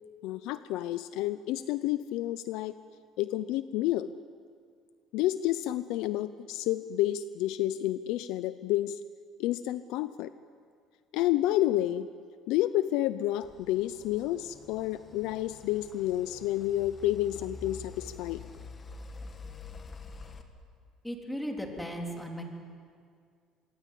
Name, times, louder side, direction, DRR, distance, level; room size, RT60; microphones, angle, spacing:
voice 1, 0.2-2.8 3.2-4.1 5.1-9.0 9.4-10.3 11.1-12.1 12.5-18.4, left 14 dB, 80° left, 13 dB, 0.7 m, -30 dB
sound 1, 13.4-20.4, left 4 dB, 30° left, 2.1 m, -47 dB
voice 2, 21.0-22.4, equal, 5° left, 1 dB, 3.6 m, -36 dB
26.5 x 22.5 x 8.5 m, 2.2 s
cardioid pair, 140°, 0 cm